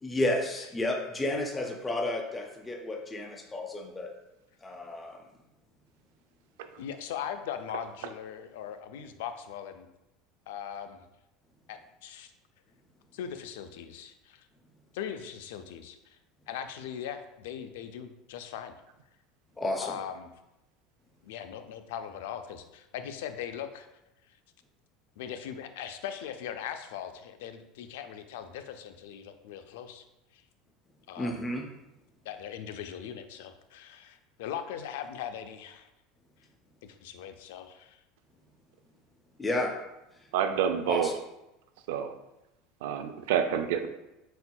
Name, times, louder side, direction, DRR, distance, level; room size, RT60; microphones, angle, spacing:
voice 1, 0.0-4.1 4.6-5.2 19.6-20.0 31.2-31.7 39.4-39.7 40.9-41.1, left 1 dB, 10° left, 2 dB, 0.3 m, -31 dB
voice 2, 6.8-9.9 10.5-11.0 11.7-12.3 13.1-14.5 14.9-16.2 16.5-18.7 19.8-20.3 21.2-23.9 25.2-30.0 30.3-30.4 31.1-31.3 32.3-35.9 36.8-38.0, left 9 dB, 85° left, 8 dB, 0.4 m, -40 dB
voice 3, 40.3-41.1 41.9-42.1 42.8-43.9, right 8 dB, 80° right, 8 dB, 0.4 m, -28 dB
4.4 x 4.2 x 2.2 m, 0.92 s
cardioid pair, 175°, 0 cm